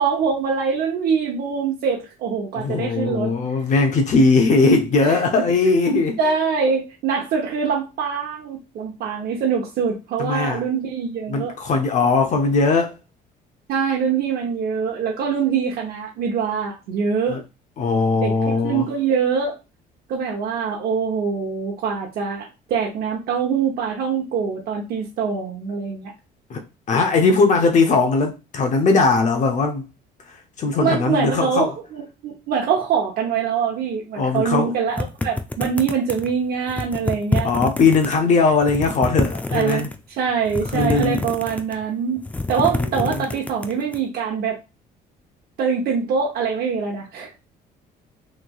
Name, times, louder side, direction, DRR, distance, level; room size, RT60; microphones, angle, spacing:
voice 1, 0.0-3.3 5.0-5.2 6.2-11.5 13.7-17.4 18.2-19.5 20.1-26.1 30.8-37.5 39.5-39.9 40.2-42.2 42.5-44.6 45.6-47.4, right 6 dB, 65° right, 0.8 m, -24 dB
voice 2, 2.5-6.2 10.2-10.6 11.3-13.0 17.3-17.4 17.8-18.9 26.5-26.6 26.9-29.8 30.3-31.7 34.1-34.8 37.4-39.9 40.7-41.2 42.6-43.2, left 3 dB, 45° left, 0.6 m, -19 dB
sound 1, 35.0-36.3 36.7-38.2 38.5-40.0 40.5-41.8 42.2-44.0, left 2 dB, 10° left, 0.4 m, -26 dB
3.5 x 3.1 x 2.3 m
cardioid pair, 110°, 17 cm